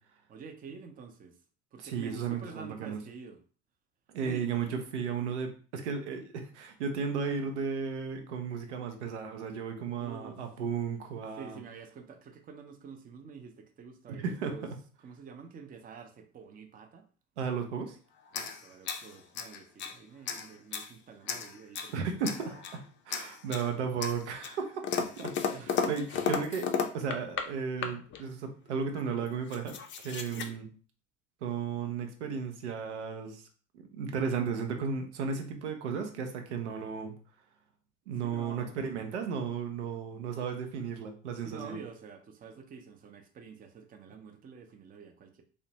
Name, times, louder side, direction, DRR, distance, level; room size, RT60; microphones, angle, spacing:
voice 1, 0.3-1.4 1.7-3.4 4.2-4.4 9.9-10.4 11.4-14.7 15.0-17.1 18.3-22.1 22.5-22.6 25.5-26.0 30.3-30.6 38.2-38.8 41.4-45.4, right 5 dB, 25° right, 5 dB, 0.5 m, -48 dB
voice 2, 1.8-3.0 4.1-11.6 14.1-14.6 17.4-18.0 21.9-24.8 25.2-30.7 31.4-33.4 33.7-37.1 38.1-41.8, right 6 dB, 85° right, 5 dB, 0.6 m, -34 dB
sound 1, 18.3-20.0 20.3-20.9 21.3-22.0 22.2-22.8 23.1-23.7 24.0-27.5 27.8-28.2 29.0-29.1 29.3-30.5, left 6 dB, 35° left, 0.4 m, -34 dB
2.5 x 2.1 x 2.8 m, 0.40 s
hypercardioid pair, 70°, 34 cm